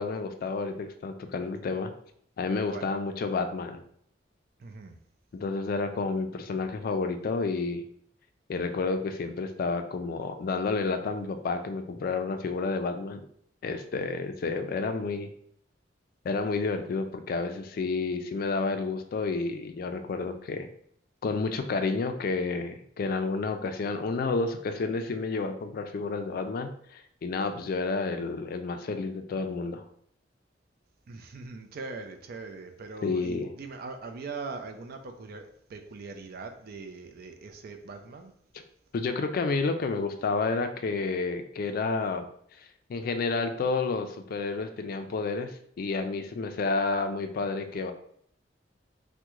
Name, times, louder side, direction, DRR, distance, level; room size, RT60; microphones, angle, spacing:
voice 1, 0.0-1.9 2.4-3.8 5.3-7.8 8.5-13.2 13.6-15.3 16.2-20.7 21.2-29.8 33.0-33.5 38.9-42.3 42.9-45.5 45.8-47.9, left 4 dB, 55° left, 7 dB, 0.3 m, -30 dB
voice 2, 4.6-5.0 31.1-38.3, right 4 dB, 55° right, 5 dB, 0.4 m, -41 dB
3.5 x 2.1 x 3.0 m, 0.65 s
head